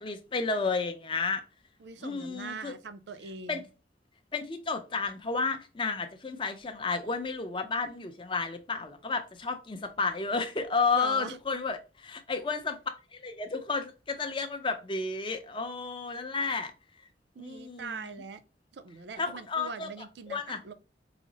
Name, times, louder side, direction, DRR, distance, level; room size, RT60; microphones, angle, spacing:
voice 1, 0.0-1.4 2.0-2.7 3.5-3.6 4.3-12.8 13.1-16.7 17.4-18.2 19.2-20.7, left 4 dB, 25° left, 0.5 m, -32 dB
voice 2, 1.8-3.7 10.9-11.4 17.4-18.4 18.7-20.7, right 5 dB, 70° right, 0.4 m, -41 dB
4.8 x 2.0 x 3.8 m
head